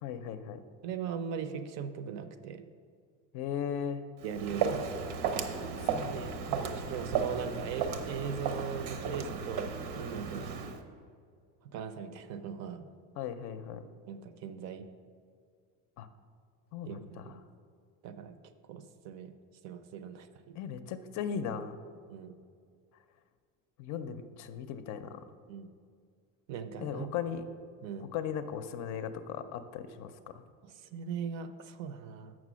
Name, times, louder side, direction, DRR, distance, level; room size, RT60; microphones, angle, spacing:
voice 1, 0.0-0.6 3.3-4.0 5.8-6.2 13.2-13.9 16.0-16.1 16.7-17.0 20.6-21.8 23.8-25.2 26.8-27.5 28.1-30.4, left 8 dB, 55° left, 10 dB, 0.5 m, -37 dB
voice 2, 0.8-2.6 4.2-4.8 6.0-10.8 11.7-12.9 14.1-14.9 16.8-17.4 18.0-18.3 18.7-19.3 19.6-20.6 22.1-22.3 25.5-25.7 26.5-27.1 27.8-28.1 30.6-32.4, right 7 dB, 50° right, 10 dB, 0.5 m, -39 dB
Walk footsteps, 4.2-10.8, right 6 dB, 85° right, 0.9 m, -34 dB
7.5 x 6.1 x 6.1 m, 2.2 s
cardioid pair, 170°, 34 cm